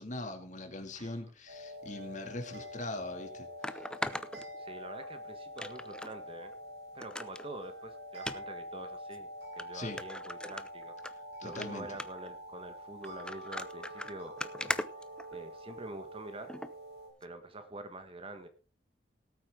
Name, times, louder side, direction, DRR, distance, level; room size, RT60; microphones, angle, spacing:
voice 1, 0.0-3.8 9.7-10.0 11.4-11.9, left 2 dB, 45° left, 6 dB, 2.3 m, -41 dB
sound 1, 1.5-17.1, equal, 70° right, 5.1 m, -46 dB
sound 2, 2.6-2.7 3.6-5.1 5.6-6.1 6.5-6.6 7.0-7.5 8.2-8.4 9.1-9.2 9.6-9.7 10.0-11.1 11.5-11.7 12.0-12.3 13.0-15.7 16.5-16.7 17.2-17.3, left 1 dB, 5° left, 0.6 m, -39 dB
voice 2, 4.6-6.5 6.9-11.0 11.4-14.4 15.3-16.6 17.2-18.5, right 2 dB, 30° right, 9 dB, 1.4 m, -46 dB
18.0 x 8.8 x 3.7 m, 0.36 s
head